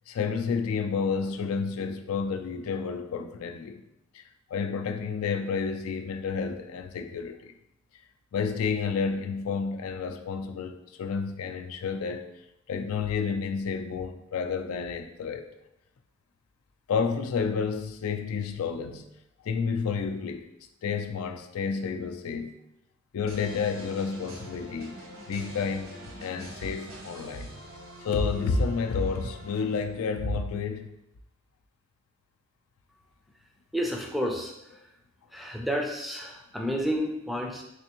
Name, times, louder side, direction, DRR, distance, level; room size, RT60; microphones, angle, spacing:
voice 1, 0.1-3.8 4.1-4.2 4.5-7.5 8.3-12.3 12.7-15.5 16.9-19.1 19.4-20.5 20.8-22.6 23.1-25.0 25.3-25.9 26.2-27.5 28.0-30.9, left 5 dB, 90° left, 7 dB, 0.4 m, -30 dB
sound 1, 23.3-30.2, right 1 dB, 70° right, 0.8 m, -45 dB
voice 2, 33.7-34.8 35.3-37.6, equal, ahead, 1 dB, 0.3 m, -31 dB
3.4 x 3.3 x 2.9 m, 0.84 s
head